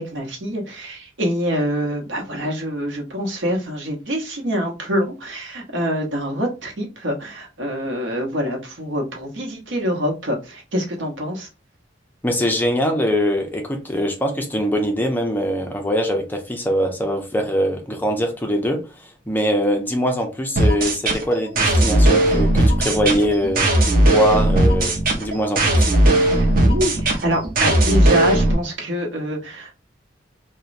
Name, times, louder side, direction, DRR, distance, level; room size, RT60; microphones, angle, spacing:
voice 1, 0.0-11.5 26.2-29.8, equal, 75° right, 0.8 m, -25 dB
voice 2, 12.2-23.7 24.0-25.9, equal, 10° left, 0.5 m, -22 dB
sound 1, 20.6-28.6, right 1 dB, 50° right, 0.7 m, -17 dB
2.9 x 2.2 x 2.5 m
head